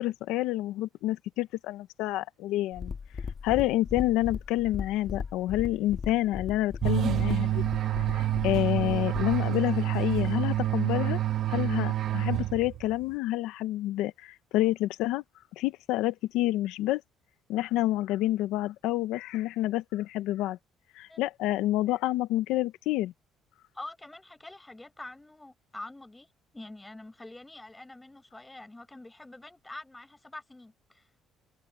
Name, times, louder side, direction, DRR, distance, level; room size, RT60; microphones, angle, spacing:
voice 1, 0.0-2.9 3.4-7.6 8.1-11.2 11.5-15.2 15.6-17.0 17.5-20.6 21.0-23.1, left 15 dB, 90° left, 0.9 m, -28 dB
sound 1, 2.7-9.4, left 5 dB, 30° left, 1.9 m, -38 dB
sound 2, 6.8-12.9, right 13 dB, 50° right, 1.3 m, -28 dB
voice 2, 23.7-26.3 26.5-31.0, left 2 dB, 10° left, 7.4 m, -45 dB
cardioid pair, 150°, 0 cm